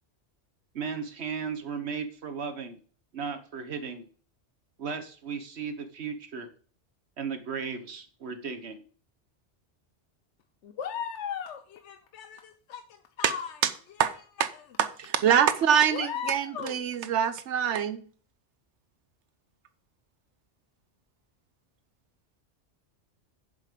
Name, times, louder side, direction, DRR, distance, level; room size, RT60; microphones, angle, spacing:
voice 1, 0.7-2.8 3.1-4.1 4.8-6.5 7.2-8.8, right 6 dB, 70° right, 1.4 m, -35 dB
voice 2, 10.6-13.6 14.0-14.1 14.5-14.6 15.9-16.8, left 8 dB, 80° left, 1.0 m, -37 dB
voice 3, 14.8-18.0, right 8 dB, 85° right, 1.1 m, -24 dB
7.5 x 7.5 x 5.1 m
omnidirectional pair, 1.2 m